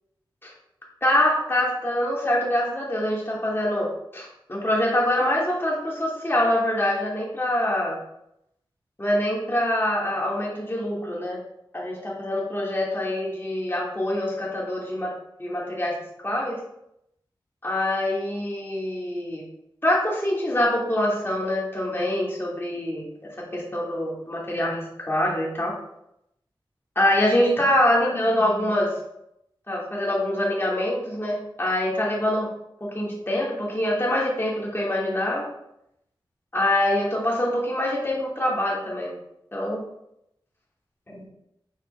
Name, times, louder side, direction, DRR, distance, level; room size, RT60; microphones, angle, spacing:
voice 1, 1.0-8.0 9.0-11.4 11.7-15.1 15.4-16.6 17.6-19.4 19.8-23.1 23.5-25.7 26.9-28.9 29.7-32.5 32.8-35.5 36.5-39.1 39.5-39.8 41.1-41.2, left 1 dB, 25° left, -4 dB, 2.7 m, -25 dB
6.7 x 4.5 x 4.2 m, 0.80 s
wide cardioid pair, 65°, 9 cm